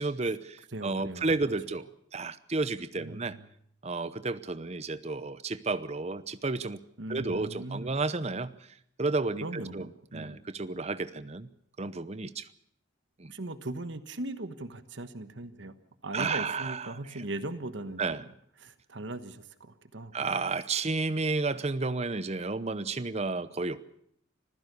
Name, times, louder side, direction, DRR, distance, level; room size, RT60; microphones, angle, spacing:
voice 1, 0.0-1.8 2.1-3.4 3.8-6.8 7.1-8.5 9.0-11.5 11.8-12.5 13.2-13.3 16.1-17.2 18.0-18.2 20.1-23.9, right 3 dB, 35° right, 14 dB, 0.8 m, -32 dB
voice 2, 0.7-1.4 3.0-3.4 7.0-7.9 9.4-10.4 13.3-15.8 16.0-18.2 18.6-20.3, right 2 dB, 65° right, 11 dB, 1.2 m, -39 dB
26.0 x 15.5 x 6.8 m, 0.68 s
head